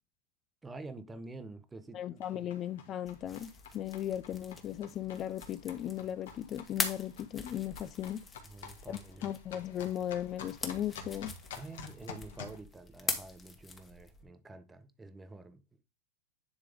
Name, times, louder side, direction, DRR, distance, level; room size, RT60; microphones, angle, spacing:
voice 1, 0.6-2.5 7.8-7.9 8.4-9.3 11.5-15.8, right 2 dB, 10° right, 0.9 m, -48 dB
voice 2, 1.9-8.2 8.9-11.3, left 11 dB, 35° left, 0.4 m, -37 dB
sound 1, 2.2-12.6, left 6 dB, 80° left, 1.7 m, -50 dB
sound 2, 3.1-14.2, left 4 dB, 20° left, 1.3 m, -43 dB
10.0 x 3.7 x 3.5 m
supercardioid pair, 130°, 0 cm